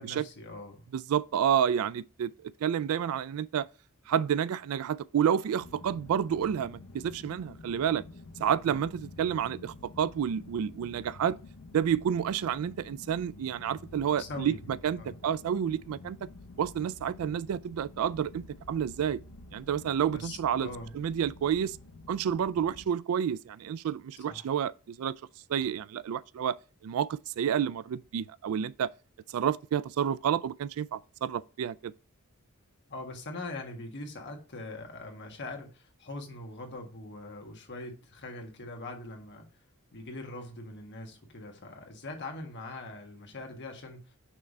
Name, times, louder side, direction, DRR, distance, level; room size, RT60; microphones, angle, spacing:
voice 1, 0.0-0.9 8.7-8.8 14.2-14.6 15.0-15.1 20.1-20.9 24.3-24.5 32.9-39.5 39.9-44.2, left 2 dB, 50° left, 1.6 m, -42 dB
voice 2, 0.9-3.7 4.1-8.0 8.4-11.4 11.7-16.2 16.6-19.2 19.5-20.7 20.9-21.8 22.1-25.1 25.5-26.6 26.8-28.9 29.3-31.9, right 8 dB, 70° right, 0.3 m, -30 dB
sound 1, 5.6-22.9, left 2 dB, 85° left, 0.8 m, -49 dB
5.9 x 3.3 x 5.3 m
head